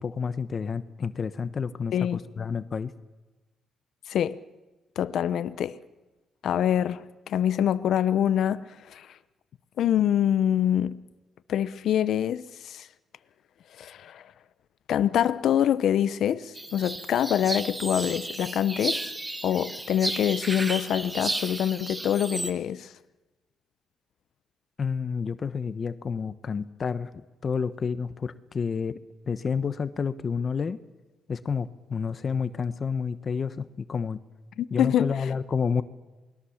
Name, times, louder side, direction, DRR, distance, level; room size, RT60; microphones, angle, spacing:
voice 1, 0.0-2.9 24.8-30.8 31.3-34.2 34.7-35.8, left 6 dB, 40° left, 1.0 m, -30 dB
voice 2, 5.0-5.8 6.4-9.2 9.8-11.0 11.5-12.9 13.8-14.2 14.9-19.1 19.4-22.9 34.6-35.1, left 10 dB, 70° left, 0.8 m, -25 dB
sound 1, 16.5-22.5, right 1 dB, 15° right, 2.3 m, -33 dB
28.0 x 21.5 x 7.3 m
cardioid pair, 90°, 0 cm